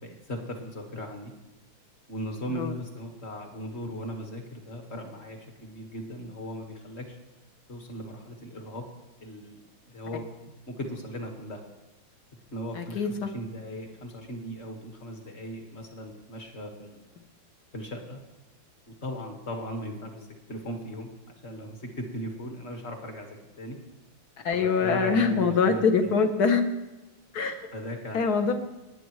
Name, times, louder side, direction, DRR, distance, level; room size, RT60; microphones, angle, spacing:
voice 1, 0.0-1.3 2.1-7.2 7.7-8.9 9.2-10.3 10.7-11.6 12.5-17.0 17.7-18.2 19.0-23.8 24.5-26.1 27.7-28.3, equal, 35° left, 3 dB, 1.8 m, -38 dB
voice 2, 12.7-13.3 24.4-26.6 27.3-27.7 28.1-28.5, left 5 dB, 55° left, 6 dB, 1.3 m, -24 dB
18.5 x 9.8 x 3.2 m, 1.1 s
omnidirectional pair, 2.2 m